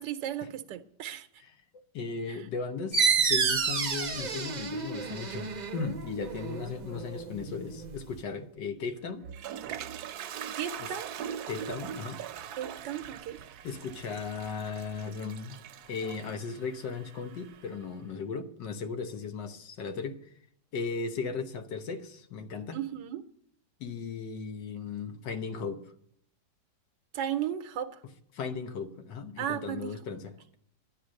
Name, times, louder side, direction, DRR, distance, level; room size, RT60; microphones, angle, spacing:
voice 1, 0.0-1.3 2.3-2.5 10.4-11.1 12.6-13.4 22.7-23.2 27.1-28.0 29.4-29.9, right 10 dB, 85° right, 1.4 m, -35 dB
voice 2, 1.9-9.3 10.8-10.9 11.5-12.2 13.6-15.6 15.9-20.2 20.7-22.8 23.8-25.8 28.3-30.6, left 5 dB, 85° left, 1.7 m, -36 dB
sound 1, 2.9-8.2, right 5 dB, 45° right, 0.5 m, -30 dB
Toilet flush, 9.0-17.8, right 9 dB, 70° right, 1.1 m, -42 dB
11.5 x 10.0 x 6.4 m
omnidirectional pair, 1.9 m